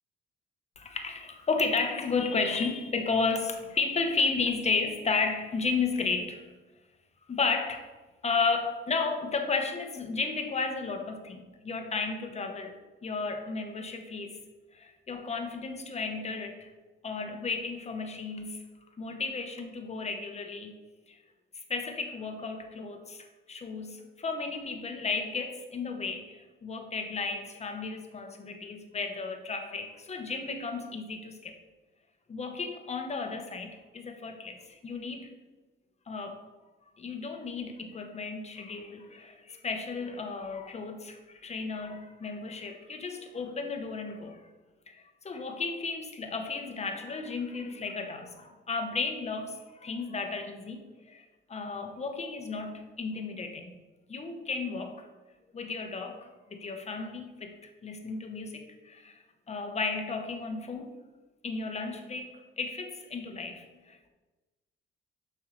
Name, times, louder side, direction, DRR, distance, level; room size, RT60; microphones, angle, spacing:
voice 1, 0.8-6.4 7.3-7.9 8.2-12.8 13.0-14.4 14.7-16.7 17.0-18.6 19.0-20.8 21.1-21.2 21.6-31.5 32.3-35.3 36.1-36.4 37.0-44.4 44.9-51.2 51.5-53.8 54.1-55.1 55.5-59.2 59.5-60.9 61.4-64.1, left 4 dB, 35° left, 5 dB, 1.0 m, -33 dB
7.4 x 5.5 x 3.2 m, 1.2 s
cardioid pair, 90°, 20 cm